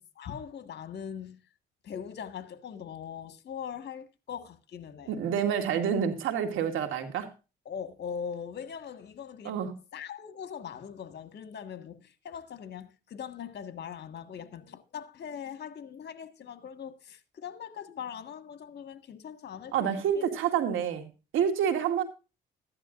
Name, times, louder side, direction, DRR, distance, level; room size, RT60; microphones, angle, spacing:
voice 1, 0.0-1.4 1.8-5.2 7.6-9.6 9.9-20.3 20.6-20.7, left 7 dB, 55° left, 1.7 m, -41 dB
voice 2, 5.1-7.3 9.4-9.7 19.7-21.1 21.3-22.0, right 8 dB, 85° right, 2.3 m, -28 dB
14.5 x 11.0 x 2.5 m
cardioid pair, 90°, 20 cm